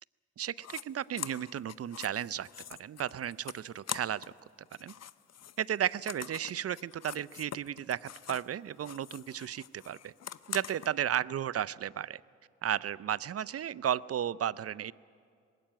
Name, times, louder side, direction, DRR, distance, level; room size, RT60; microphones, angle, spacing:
voice 1, 0.4-2.5 2.8-4.3 4.8-4.9 5.6-10.1 10.5-12.2 12.6-14.9, right 10 dB, 50° right, 20 dB, 0.5 m, -34 dB
sound 1, 0.6-0.8 1.2-4.4 4.7-8.5 8.8-10.9, left 10 dB, 55° left, 0.7 m, -44 dB
19.5 x 17.0 x 9.3 m, 2.2 s
supercardioid pair, 45°, 31 cm